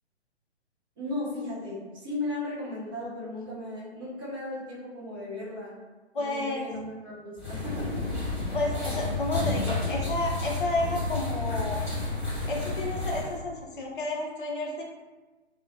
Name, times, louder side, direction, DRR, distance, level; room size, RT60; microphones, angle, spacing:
voice 1, 1.0-5.8 6.1-8.2, left 2 dB, 20° right, -8 dB, 0.6 m, -36 dB
voice 2, 6.1-6.7 8.5-11.8 12.5-14.8, left 2 dB, 50° left, 0 dB, 0.6 m, -31 dB
sound 1, 7.4-13.3, left 2 dB, 10° left, 1.2 m, -31 dB
2.3 x 2.1 x 2.5 m, 1.2 s
figure-of-eight pair, 130°, 34 cm